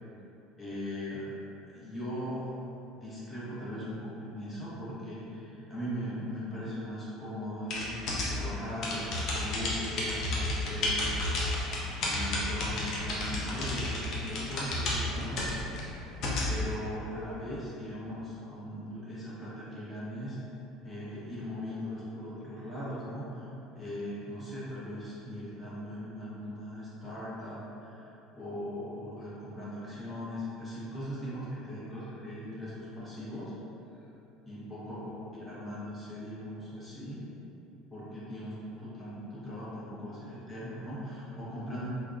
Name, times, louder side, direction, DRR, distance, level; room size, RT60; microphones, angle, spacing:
voice 1, 0.6-1.3 1.7-2.5 2.9-11.1 11.9-15.4 15.7-15.8 16.5-20.4 20.8-33.5 33.9-34.0 34.4-35.0 35.5-37.2 37.9-41.9, equal, 15° left, -10 dB, 1.1 m, -39 dB
sound 1, 7.7-16.5, left 2 dB, 45° left, 0.6 m, -32 dB
3.4 x 2.1 x 2.5 m, 2.9 s
figure-of-eight pair, 65°, 0 cm